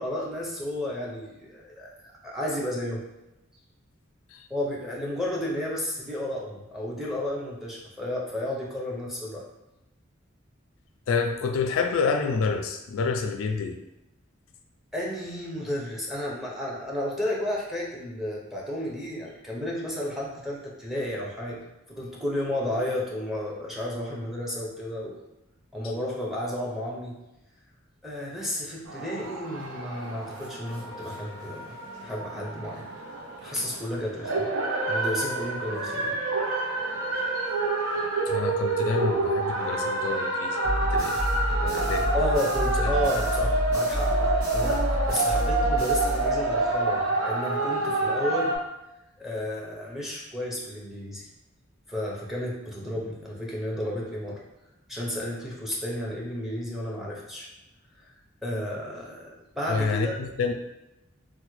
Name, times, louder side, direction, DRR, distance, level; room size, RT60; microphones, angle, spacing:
voice 1, 0.0-1.9 2.2-3.0 4.5-9.4 14.9-25.2 25.7-27.1 28.0-31.8 32.0-32.9 33.4-34.5 34.8-36.2 42.1-48.5 49.2-51.2 51.9-54.4 54.9-57.5 58.4-60.2, left 1 dB, ahead, -4 dB, 0.6 m, -32 dB
voice 2, 11.1-13.8 38.3-40.6 40.9-41.2 41.6-42.1 42.8-43.0 59.7-60.5, left 4 dB, 80° left, 6 dB, 0.3 m, -28 dB
sound 1, 28.9-48.6, right 2 dB, 85° right, 0.6 m, -28 dB
sound 2, 40.6-46.7, equal, 55° right, 1.3 m, -29 dB
3.3 x 2.1 x 3.1 m, 0.95 s
head